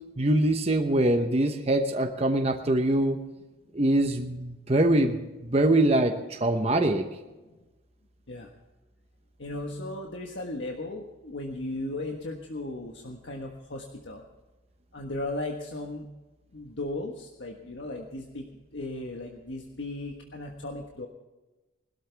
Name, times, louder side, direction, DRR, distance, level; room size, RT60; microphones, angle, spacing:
voice 1, 0.2-3.2 3.7-5.2 5.5-7.1, right 1 dB, 35° right, 5 dB, 0.9 m, -23 dB
voice 2, 9.4-14.2 14.9-16.0 16.5-18.4 18.7-21.1, left 2 dB, 75° left, 1 dB, 1.4 m, -36 dB
20.5 x 13.0 x 3.5 m, 1.1 s
head